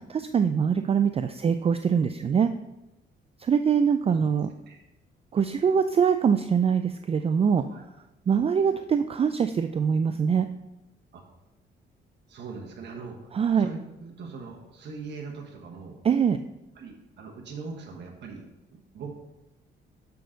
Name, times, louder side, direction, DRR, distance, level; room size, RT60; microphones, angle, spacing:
voice 1, 0.3-2.5 3.4-4.5 5.3-7.6 8.3-10.5 13.3-13.7 16.0-16.4, right 7 dB, 30° right, 9 dB, 0.3 m, -23 dB
voice 2, 12.3-13.3 13.6-16.0 16.8-18.5 18.7-19.2, right 4 dB, 60° right, 1 dB, 1.2 m, -41 dB
6.9 x 6.4 x 3.8 m, 0.93 s
cardioid pair, 90°, 20 cm